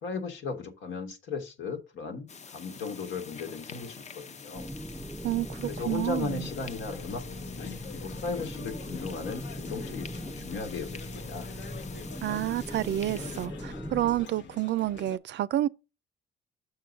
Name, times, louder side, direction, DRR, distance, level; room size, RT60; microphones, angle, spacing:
voice 1, 0.0-4.7 5.6-7.2 7.6-11.5, left 4 dB, 85° left, 1.5 m, -36 dB
sound 1, 2.3-13.5, left 5 dB, 35° left, 0.6 m, -47 dB
sound 2, 4.5-14.3, equal, 5° right, 0.5 m, -40 dB
voice 2, 5.2-6.5 12.2-15.7, right 13 dB, 65° right, 0.4 m, -29 dB
sound 3, 6.3-15.2, left 7 dB, 65° left, 0.9 m, -46 dB
6.6 x 4.7 x 5.2 m
cardioid pair, 90°, 20 cm